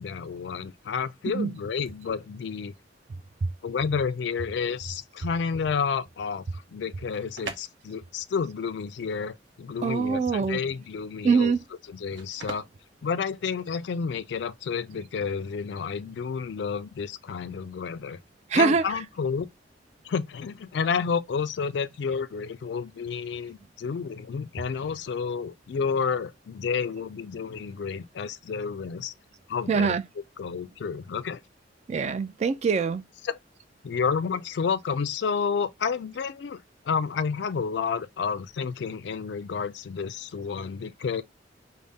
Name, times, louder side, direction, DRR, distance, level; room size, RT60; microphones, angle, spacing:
voice 1, 0.0-2.7 3.6-11.5 11.9-12.7 13.0-18.2 18.5-19.5 20.0-29.1 29.5-30.0 30.4-31.4 33.2-33.4 33.8-41.2, left 6 dB, 65° left, 0.3 m, -30 dB
sound 1, 7.0-13.9, right 3 dB, 75° right, 0.8 m, -44 dB
voice 2, 9.8-10.6 11.2-11.6 18.5-18.9 29.7-30.0 31.9-33.0, right 5 dB, 35° right, 0.3 m, -23 dB
3.5 x 2.1 x 3.8 m
head